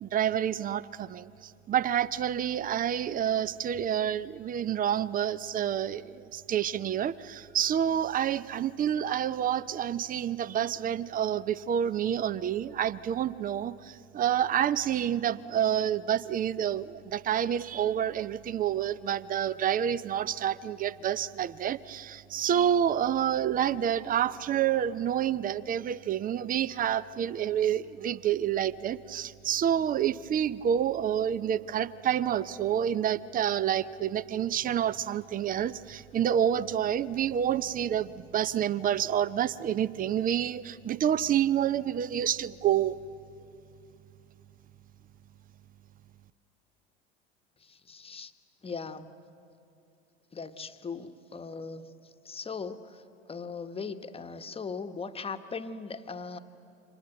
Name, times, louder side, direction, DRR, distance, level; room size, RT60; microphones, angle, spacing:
voice 1, 0.0-43.0, right 10 dB, 25° right, 18 dB, 0.7 m, -28 dB
voice 2, 47.6-48.3 48.6-49.1 50.3-51.9 52.2-53.0 53.3-56.4, left 5 dB, 15° left, 9 dB, 1.3 m, -39 dB
29.0 x 26.0 x 7.8 m, 2.6 s
figure-of-eight pair, 75°, 33 cm